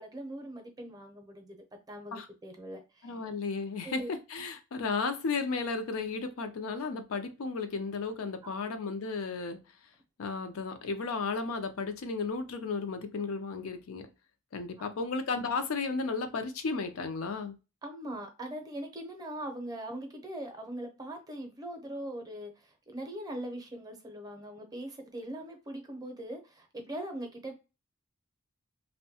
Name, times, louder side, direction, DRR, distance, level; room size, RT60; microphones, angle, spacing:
voice 1, 0.0-1.6 1.9-3.1 3.8-4.1 8.4-8.6 14.8-15.1 17.8-27.5, right 1 dB, 20° right, 0.6 m, -41 dB
voice 2, 3.0-9.6 10.2-14.1 14.5-17.6, left 4 dB, 80° left, 0.5 m, -34 dB
2.6 x 2.1 x 2.7 m
head